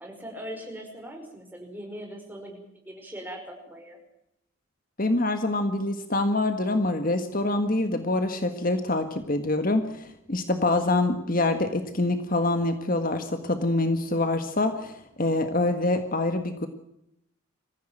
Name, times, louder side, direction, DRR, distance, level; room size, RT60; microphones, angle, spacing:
voice 1, 0.0-4.0, equal, 10° right, 2 dB, 5.4 m, -40 dB
voice 2, 5.0-16.7, left 2 dB, 40° left, 8 dB, 1.6 m, -25 dB
24.5 x 15.5 x 9.1 m, 0.78 s
head